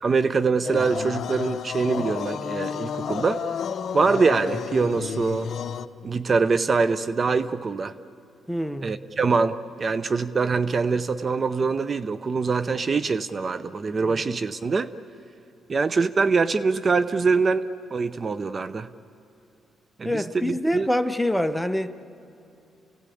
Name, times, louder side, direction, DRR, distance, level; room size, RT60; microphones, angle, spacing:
voice 1, 0.0-3.4 3.9-5.5 6.0-7.9 8.8-14.9 15.7-17.7 17.9-18.9 20.0-20.9, right 4 dB, 35° right, 0.6 m, -24 dB
sound 1, 0.6-5.9, left 7 dB, 55° left, 0.8 m, -31 dB
voice 2, 8.5-9.0 14.0-14.2 20.0-22.0, left 1 dB, 5° left, 0.9 m, -26 dB
29.5 x 16.5 x 8.5 m
cardioid pair, 90°, 0 cm